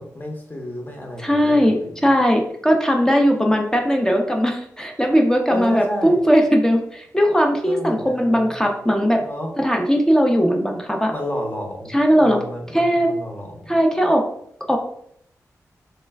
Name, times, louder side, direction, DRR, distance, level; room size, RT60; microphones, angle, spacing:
voice 1, 0.0-2.1 5.5-6.2 7.7-8.6 9.2-9.5 11.1-13.8, left 1 dB, 30° left, 1 dB, 1.0 m, -31 dB
voice 2, 1.2-1.8 2.0-9.2 9.6-11.1 11.9-12.4 12.7-13.1 13.7-14.2 14.7-14.8, equal, 10° left, 2 dB, 0.6 m, -18 dB
3.2 x 2.1 x 3.4 m, 0.68 s
cardioid pair, 40°, 7 cm